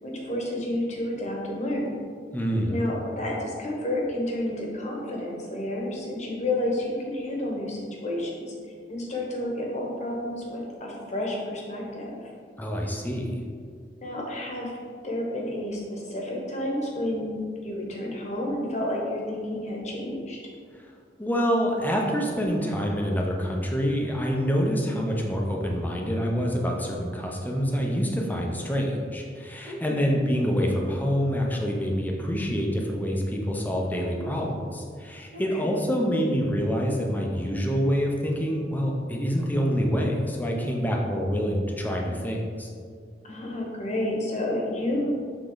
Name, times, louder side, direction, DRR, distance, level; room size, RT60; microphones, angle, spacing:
voice 1, 0.0-1.9 2.6-8.5 8.9-12.2 14.0-14.8 15.0-20.4 29.6-30.0 35.3-35.8 43.2-45.1, left 1 dB, 40° left, -1 dB, 1.2 m, -30 dB
voice 2, 2.3-2.8 12.6-13.4 21.2-42.7, equal, 10° left, -1 dB, 0.7 m, -26 dB
6.8 x 3.8 x 3.9 m, 2.1 s
head